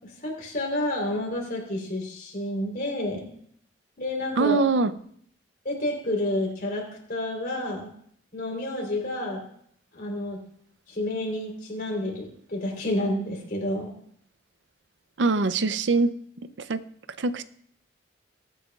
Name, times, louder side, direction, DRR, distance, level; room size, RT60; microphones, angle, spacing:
voice 1, 0.0-3.3 4.0-4.6 5.6-6.8 7.1-7.9 8.3-9.4 9.9-10.4 10.9-13.9, left 1 dB, 50° left, 0 dB, 3.7 m, -29 dB
voice 2, 4.4-4.9 15.2-16.1 16.6-16.8 17.2-17.4, right 3 dB, 75° right, 13 dB, 0.5 m, -23 dB
21.5 x 9.1 x 2.4 m, 0.65 s
head